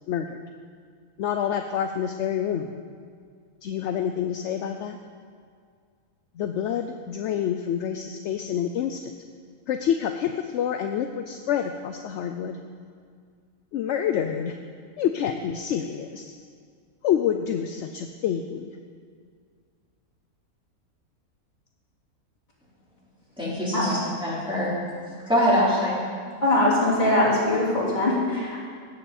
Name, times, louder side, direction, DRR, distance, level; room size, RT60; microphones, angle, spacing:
voice 1, 0.1-0.4 1.2-2.7 3.6-5.0 6.3-9.1 9.7-12.6 13.7-14.5 15.0-16.3 17.0-18.8, left 9 dB, 65° left, 6 dB, 0.7 m, -27 dB
voice 2, 23.4-24.7 25.3-26.0, equal, 5° right, -9 dB, 3.6 m, -23 dB
voice 3, 26.4-28.6, left 1 dB, 30° left, -8 dB, 3.2 m, -22 dB
16.5 x 7.9 x 4.2 m, 2.1 s
omnidirectional pair, 1.5 m